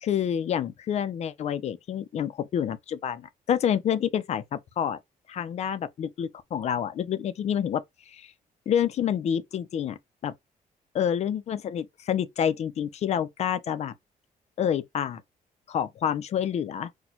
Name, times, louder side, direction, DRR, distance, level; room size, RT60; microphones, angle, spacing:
voice 1, 0.0-5.0 5.3-8.3 8.7-10.3 10.9-13.9 14.6-15.2 15.7-16.9, left 9 dB, 50° left, 0.4 m, -28 dB
4.2 x 2.2 x 2.8 m
cardioid pair, 165°, 15 cm